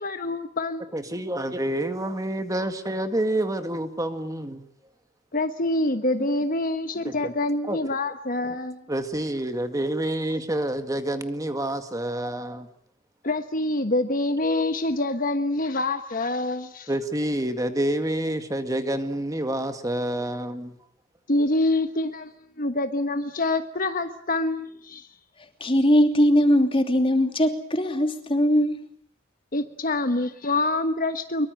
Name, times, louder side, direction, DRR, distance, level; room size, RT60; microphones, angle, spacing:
voice 1, 0.0-1.2 5.3-8.8 13.2-16.9 21.3-25.1 29.5-31.5, left 2 dB, 40° left, 1.3 m, -26 dB
voice 2, 0.9-4.7 6.1-6.4 7.1-7.2 7.6-7.8 8.9-12.7 16.9-20.7, right 1 dB, 15° right, 1.9 m, -28 dB
voice 3, 25.6-28.9, equal, 25° left, 3.0 m, -20 dB
24.0 x 23.5 x 7.9 m
head